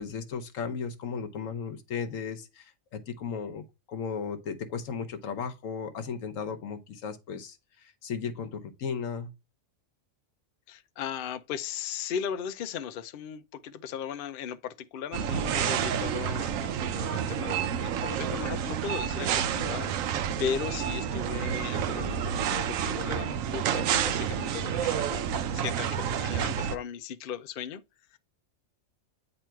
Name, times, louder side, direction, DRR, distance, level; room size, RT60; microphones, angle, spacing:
voice 1, 0.0-9.3, left 6 dB, 75° left, 1.2 m, -35 dB
voice 2, 10.7-27.8 28.1-28.2, left 8 dB, 60° left, 0.6 m, -37 dB
sound 1, 15.1-26.8, right 8 dB, 85° right, 1.0 m, -29 dB
8.8 x 3.0 x 4.5 m
omnidirectional pair, 1.4 m